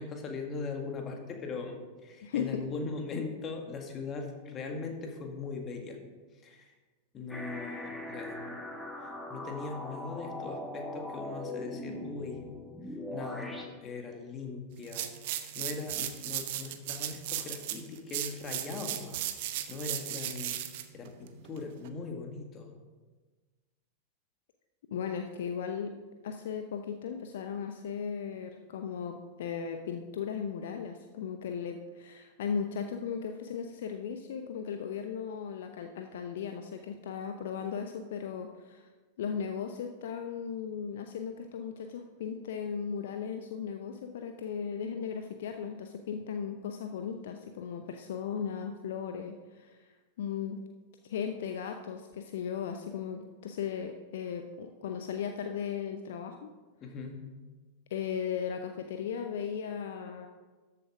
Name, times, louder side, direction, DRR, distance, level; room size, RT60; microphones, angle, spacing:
voice 1, 0.0-6.0 6.4-6.7 7.1-8.5 9.0-12.4 13.1-13.5 13.8-20.6 20.9-22.8 56.8-57.2, left 4 dB, 25° left, 3 dB, 2.0 m, -40 dB
voice 2, 2.2-2.6 24.9-25.9 26.2-38.9 39.2-49.9 50.2-50.6 51.0-56.5 57.9-60.3, left 7 dB, 60° left, 6 dB, 0.7 m, -36 dB
sound 1, 7.3-13.6, left 1 dB, 5° left, 1.8 m, -40 dB
sound 2, 14.8-21.9, right 12 dB, 50° right, 0.9 m, -36 dB
13.5 x 7.9 x 4.9 m, 1.3 s
figure-of-eight pair, 90°, 0 cm